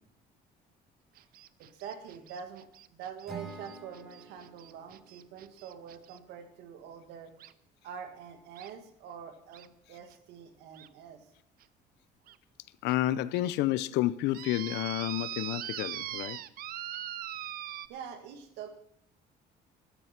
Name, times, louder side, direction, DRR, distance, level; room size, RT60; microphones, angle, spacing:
sound 1, 1.2-6.2 7.4-7.5 8.6-8.7 9.5-9.7 10.1-10.2 10.7-10.9 11.6-11.7 12.3-12.4 12.9-13.0 13.3-13.5 14.3-17.9, right 12 dB, 60° right, 0.6 m, -41 dB
voice 1, 1.6-7.3 7.8-11.3 17.9-18.7, right 7 dB, 90° right, 1.9 m, -45 dB
Acoustic guitar / Strum, 3.2-6.4, right 4 dB, ahead, 4.0 m, -49 dB
voice 2, 12.8-16.4, left 15 dB, 85° left, 0.6 m, -30 dB
13.0 x 9.5 x 5.8 m
cardioid pair, 110°, 17 cm